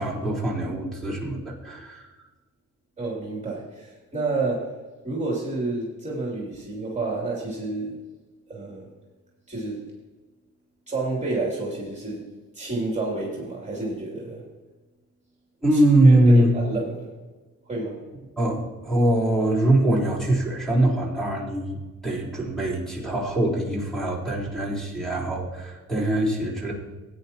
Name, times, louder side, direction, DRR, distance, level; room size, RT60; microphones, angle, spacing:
voice 1, 0.0-2.1 15.6-16.5 18.4-26.7, right 1 dB, ahead, -6 dB, 4.0 m, -22 dB
voice 2, 3.0-4.7 5.0-8.0 8.5-8.9 9.5-9.9 10.9-12.3 12.5-14.4 16.0-17.1 17.7-18.0, right 3 dB, 20° right, -4 dB, 2.9 m, -30 dB
16.5 x 9.7 x 2.9 m, 1.2 s
cardioid pair, 90°, 32 cm